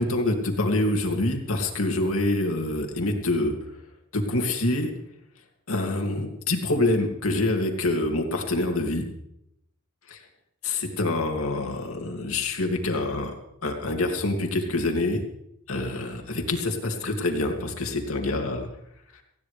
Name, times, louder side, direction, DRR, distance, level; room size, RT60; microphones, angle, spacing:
voice 1, 0.0-3.5 4.1-4.9 5.7-9.0 10.1-10.2 10.6-13.3 13.6-15.2 15.7-18.7, left 2 dB, 75° left, 3 dB, 2.5 m, -26 dB
19.0 x 16.0 x 3.4 m, 0.80 s
head